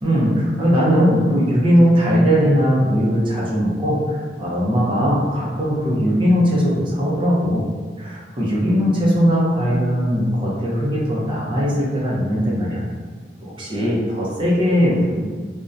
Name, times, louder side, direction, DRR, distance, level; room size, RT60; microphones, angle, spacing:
voice 1, 0.0-7.7 8.0-12.8 13.4-15.2, equal, 30° right, -5 dB, 0.5 m, -19 dB
2.7 x 2.1 x 2.4 m, 1.5 s
head